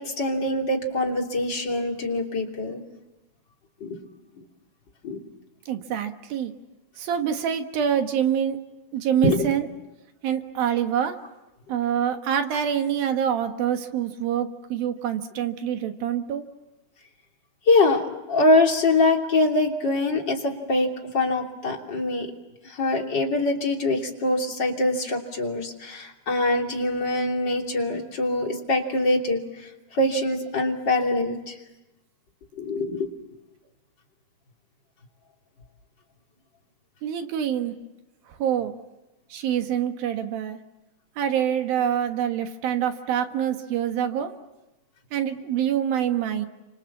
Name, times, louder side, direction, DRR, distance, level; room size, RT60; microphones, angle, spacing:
voice 1, 0.0-2.8 3.8-4.0 5.0-5.2 9.2-9.4 17.7-18.0 18.3-22.3 22.6-31.6 32.6-33.1, left 2 dB, 30° left, 1 dB, 3.1 m, -24 dB
voice 2, 5.7-6.5 7.0-8.6 8.9-9.7 10.2-11.2 11.7-16.4 37.0-37.7 38.3-38.7 39.3-40.6 41.2-44.3 45.1-46.5, right 9 dB, 65° right, 6 dB, 3.0 m, -26 dB
29.5 x 26.5 x 7.3 m, 1.0 s
omnidirectional pair, 4.8 m